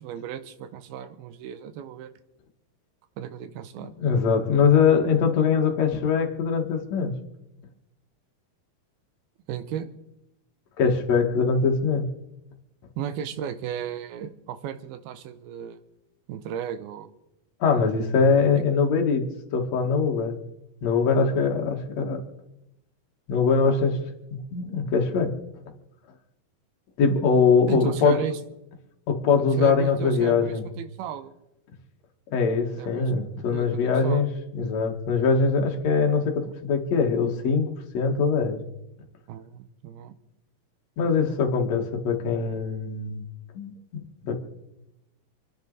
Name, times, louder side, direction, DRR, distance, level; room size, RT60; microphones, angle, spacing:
voice 1, 0.0-2.1 3.2-4.0 9.5-9.9 13.0-15.8 16.3-17.1 18.5-18.6 27.7-28.4 29.4-31.3 32.8-33.1 33.5-34.2 36.4-36.6 39.3-40.2, right 9 dB, 85° right, 11 dB, 2.8 m, -35 dB
voice 2, 3.8-7.1 10.8-12.1 17.6-19.2 19.5-20.4 20.8-22.2 23.3-24.0 24.3-25.3 27.0-28.2 29.1-30.6 32.3-38.6 41.0-43.2 43.6-43.7 44.2-44.3, left 5 dB, 55° left, 2 dB, 2.7 m, -22 dB
28.5 x 10.0 x 4.0 m, 0.88 s
omnidirectional pair, 4.3 m